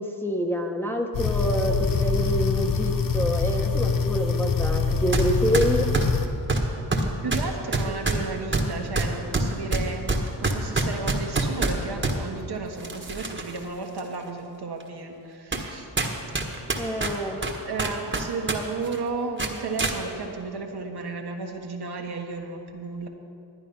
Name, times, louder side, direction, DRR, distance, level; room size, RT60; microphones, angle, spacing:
voice 1, 0.0-5.9 16.8-17.4, equal, 5° left, 0 dB, 1.3 m, -27 dB
sound 1, 1.1-6.3, left 5 dB, 45° left, 0.9 m, -25 dB
sound 2, 5.1-5.3 5.5-12.2 12.8-13.6 14.0-14.1 14.8-14.9 15.5-15.7 16.0-18.6 18.8-19.0 19.4-20.0, right 2 dB, 25° right, 1.5 m, -25 dB
voice 2, 7.2-15.9 17.6-23.1, right 3 dB, 55° right, 2 dB, 1.5 m, -33 dB
11.5 x 9.9 x 5.5 m, 2.6 s
cardioid pair, 65°, 46 cm